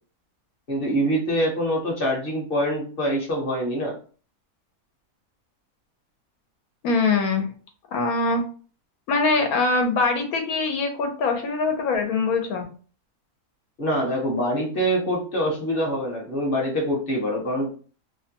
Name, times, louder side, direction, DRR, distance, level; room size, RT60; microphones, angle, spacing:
voice 1, 0.7-4.0 13.8-17.7, equal, 45° left, -1 dB, 0.9 m, -25 dB
voice 2, 6.8-7.5 7.9-8.4 9.1-12.7, left 3 dB, 85° left, 4 dB, 1.2 m, -23 dB
2.9 x 2.1 x 2.8 m, 0.39 s
omnidirectional pair, 1.5 m